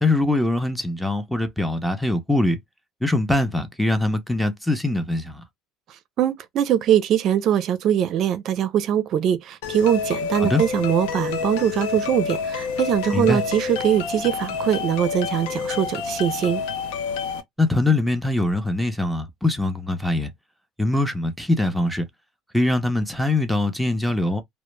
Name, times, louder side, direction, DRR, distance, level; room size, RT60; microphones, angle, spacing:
voice 1, 0.0-2.6 3.0-5.4 10.4-10.6 13.1-13.4 17.6-20.3 20.8-22.0 22.5-24.4, left 2 dB, ahead, 0.6 m, -22 dB
voice 2, 6.2-16.6, right 10 dB, 55° right, 0.5 m, -22 dB
sound 1, 9.6-17.4, left 6 dB, 90° left, 0.4 m, -28 dB
2.0 x 2.0 x 3.1 m
supercardioid pair, 110°, 0 cm